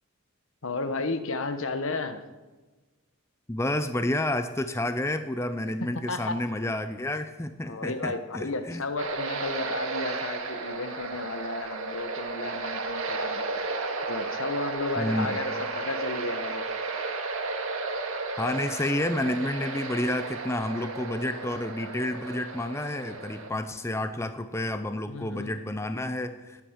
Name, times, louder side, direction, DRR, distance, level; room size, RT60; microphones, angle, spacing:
voice 1, 0.6-2.2 5.9-6.4 7.7-13.4 14.1-16.7 25.1-25.5, left 3 dB, 70° left, 9 dB, 1.1 m, -33 dB
voice 2, 3.5-8.8 15.0-15.4 18.4-26.6, left 1 dB, 10° left, 9 dB, 0.6 m, -30 dB
sound 1, 9.0-23.5, right 3 dB, 75° right, 1.8 m, -33 dB
19.0 x 8.7 x 7.3 m, 1.3 s
head